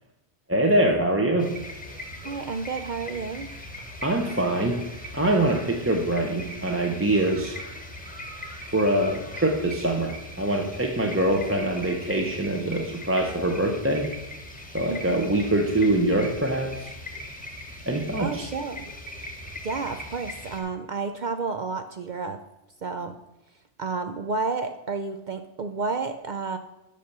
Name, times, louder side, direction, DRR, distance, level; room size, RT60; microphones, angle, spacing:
voice 1, 0.5-1.5 4.0-4.8 5.1-7.6 8.7-14.1 14.7-16.9 17.9-18.5, right 1 dB, 15° right, 2 dB, 0.7 m, -24 dB
sound 1, 1.4-20.6, left 1 dB, 10° left, 1.1 m, -40 dB
voice 2, 2.2-3.5 14.9-15.3 18.2-18.9 19.6-22.4 22.8-23.1 23.8-26.6, right 4 dB, 55° right, 7 dB, 0.6 m, -31 dB
8.4 x 5.8 x 6.6 m, 0.97 s
omnidirectional pair, 1.2 m